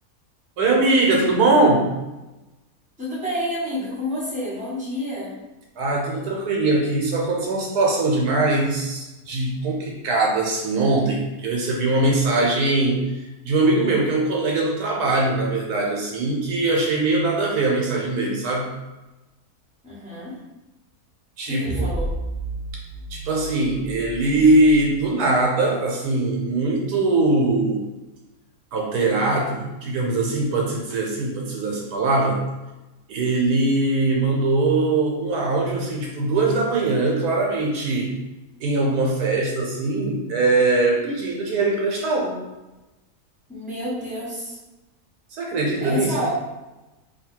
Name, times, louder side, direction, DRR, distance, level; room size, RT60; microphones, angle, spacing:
voice 1, 0.6-1.9 5.8-18.7 21.4-21.9 23.1-27.8 28.7-32.4 33.1-38.1 38.6-42.4 45.3-46.1, right 2 dB, 75° right, -1 dB, 1.1 m, -21 dB
voice 2, 3.0-5.3 19.8-20.4 21.4-22.1 43.5-44.6 45.8-46.3, equal, 5° right, -7 dB, 1.1 m, -29 dB
sound 1, 21.6-25.1, right 1 dB, 40° left, 0.4 m, -31 dB
2.8 x 2.6 x 4.3 m, 1.0 s
omnidirectional pair, 1.7 m